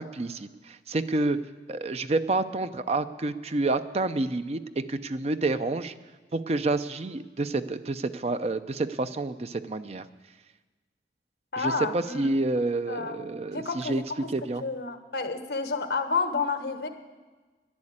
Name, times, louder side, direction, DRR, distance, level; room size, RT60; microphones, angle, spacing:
voice 1, 0.0-1.4 1.7-5.9 6.3-10.0 11.6-14.0 14.3-14.6, right 2 dB, 35° right, 11 dB, 0.5 m, -29 dB
voice 2, 11.5-12.3 12.9-13.2 13.5-14.0 14.6-16.9, left 4 dB, 70° left, 7 dB, 1.2 m, -30 dB
10.5 x 10.5 x 8.7 m, 1.3 s
head